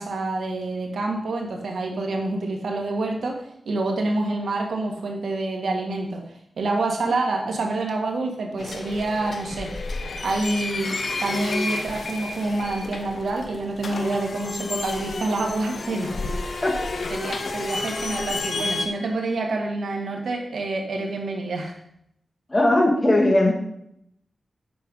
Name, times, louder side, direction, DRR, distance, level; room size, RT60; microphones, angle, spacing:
voice 1, 0.0-6.2 6.6-9.7 10.2-16.6 17.1-21.7, right 2 dB, 90° right, 1 dB, 1.9 m, -27 dB
sound 1, 8.6-18.9, left 3 dB, 60° left, 1.1 m, -31 dB
voice 2, 22.5-23.5, left 1 dB, 25° left, 1 dB, 2.2 m, -18 dB
9.2 x 6.5 x 5.5 m, 0.74 s
wide cardioid pair, 115°, 0 cm